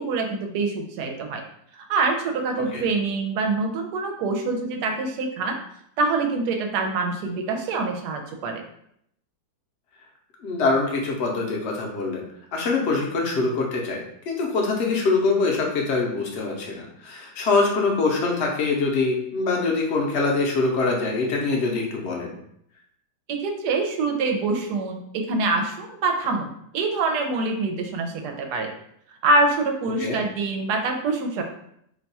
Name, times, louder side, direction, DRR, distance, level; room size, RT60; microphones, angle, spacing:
voice 1, 0.0-1.4 1.7-5.6 6.0-8.6 23.3-28.7 29.2-31.4, right 3 dB, 85° right, 4 dB, 1.2 m, -25 dB
voice 2, 10.4-12.2 12.5-14.0 14.3-22.3 30.0-30.2, left 3 dB, 55° left, 0 dB, 0.8 m, -24 dB
2.9 x 2.3 x 4.0 m, 0.72 s
omnidirectional pair, 1.7 m